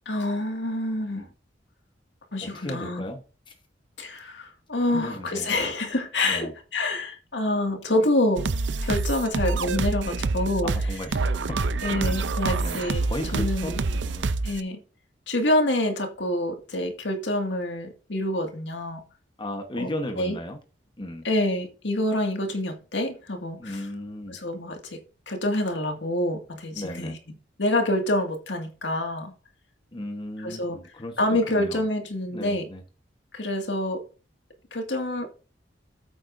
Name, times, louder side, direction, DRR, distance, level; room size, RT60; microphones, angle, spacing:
voice 1, 0.1-1.3 2.3-3.0 4.0-8.5 8.8-10.7 11.8-13.0 13.3-13.8 14.4-14.8 15.3-19.0 19.8-19.9 20.2-20.4 21.2-23.7 24.3-25.0 25.3-27.2 27.6-29.3 30.4-30.8 31.2-32.6 33.3-34.0 34.7-35.3, left 1 dB, 80° left, 2.1 m, -27 dB
voice 2, 2.4-3.5 4.9-5.5 6.2-6.5 10.6-11.3 12.2-12.3 12.6-14.3 19.4-20.6 21.0-21.3 23.6-24.4 26.7-27.2 29.9-31.9 32.3-32.8, left 1 dB, 30° left, 1.2 m, -35 dB
sound 1, 8.4-14.6, right 3 dB, 80° right, 0.6 m, -27 dB
12.5 x 8.5 x 2.6 m
head